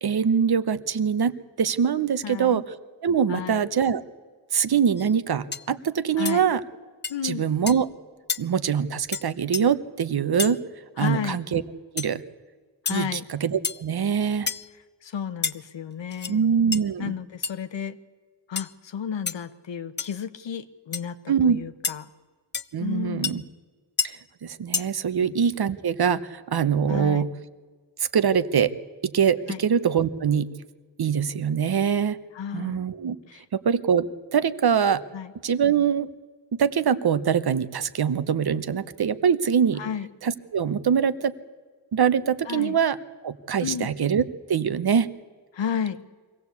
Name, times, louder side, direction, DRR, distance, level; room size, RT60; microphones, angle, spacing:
voice 1, 0.0-2.6 3.0-4.0 4.5-6.6 7.2-7.9 8.4-10.6 11.0-11.6 11.9-12.2 12.9-14.5 16.3-17.1 21.3-21.6 22.7-23.4 24.0-27.3 28.0-28.7 29.0-30.5 31.0-32.2 32.5-33.2 33.5-35.0 35.4-36.1 36.5-39.8 40.2-41.3 41.9-43.0 43.2-44.2 44.5-45.1, right 7 dB, 55° right, 13 dB, 1.0 m, -23 dB
voice 2, 2.2-2.6 3.3-3.7 6.2-6.5 7.1-7.4 11.0-11.4 12.8-13.2 15.0-16.4 17.0-18.0 18.5-22.1 22.8-23.5 25.2-25.3 26.9-27.3 29.5-29.6 32.3-32.8 33.3-33.4 35.1-35.3 39.8-40.1 42.5-42.8 43.6-43.9 45.5-46.0, left 7 dB, 75° left, 12 dB, 1.2 m, -32 dB
sound 1, 5.0-5.1 5.5-5.7 6.3-6.4 7.0-7.2 7.7-7.8 8.3-8.4 9.1-9.2 9.5-9.6 10.4-10.5 12.0-12.1 12.9-13.0 13.6-13.9 14.5-14.7 15.4-15.5 16.1-16.3 16.7-16.8 17.4-17.5 18.6-18.7 19.3-19.4 20.0-20.2 20.9-21.0 21.8-22.0 22.5-22.7 23.2-23.3 24.0-24.1 24.7-24.9, left 5 dB, 25° left, 0.5 m, -29 dB
24.0 x 17.0 x 8.4 m, 1.5 s
wide cardioid pair, 135°, 44 cm